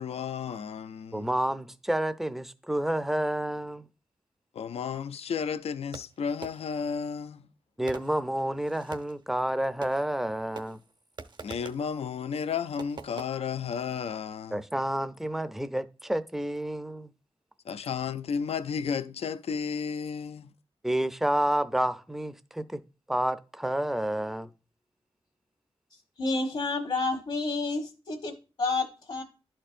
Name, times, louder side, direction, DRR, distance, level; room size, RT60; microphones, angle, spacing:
voice 1, 0.0-1.3 4.5-7.5 11.4-14.6 17.7-20.5, left 6 dB, 80° left, 0.4 m, -33 dB
voice 2, 1.1-3.9 7.8-10.8 14.5-17.1 20.8-22.8 23.1-24.5, right 1 dB, 5° right, 0.5 m, -29 dB
Fireworks, 5.9-6.9 7.9-9.2 9.8-10.3 10.6-11.9 12.8-13.3, right 4 dB, 50° right, 0.6 m, -44 dB
voice 3, 26.2-29.2, left 3 dB, 65° left, 1.2 m, -30 dB
11.5 x 4.4 x 2.5 m
wide cardioid pair, 100°, 10 cm